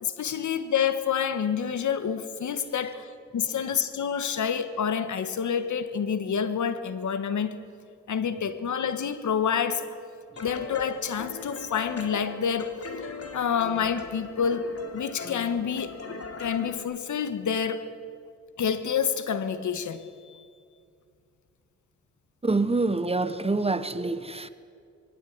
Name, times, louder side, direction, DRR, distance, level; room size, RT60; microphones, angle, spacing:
voice 1, 0.0-7.6 8.1-9.9 10.4-12.8 13.3-16.0 16.4-17.9 18.6-20.4, left 7 dB, 75° left, 1.4 m, -28 dB
sound 1, 10.4-16.8, left 4 dB, 55° left, 3.0 m, -40 dB
voice 2, 22.4-24.5, right 3 dB, 20° right, 1.1 m, -26 dB
23.5 x 17.0 x 9.6 m
cardioid pair, 90°, 30 cm